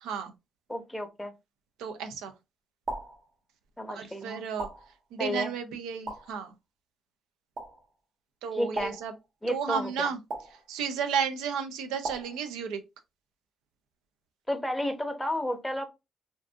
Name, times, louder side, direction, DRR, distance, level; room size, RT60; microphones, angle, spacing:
voice 1, 0.0-0.3 1.8-2.3 3.9-4.7 5.1-6.5 8.4-9.1 9.5-10.2 10.7-12.8, right 7 dB, 85° right, 0.4 m, -32 dB
voice 2, 0.7-1.3 3.8-4.4 5.2-5.5 8.5-8.9 9.4-10.1 14.5-15.9, left 1 dB, 10° left, 0.7 m, -32 dB
sound 1, 2.9-3.3 4.6-5.0 6.1-6.4 7.6-7.9 8.8-9.2 10.3-10.7 12.0-12.4, right 2 dB, 60° right, 0.7 m, -37 dB
2.5 x 2.5 x 2.2 m
supercardioid pair, 65°, 0 cm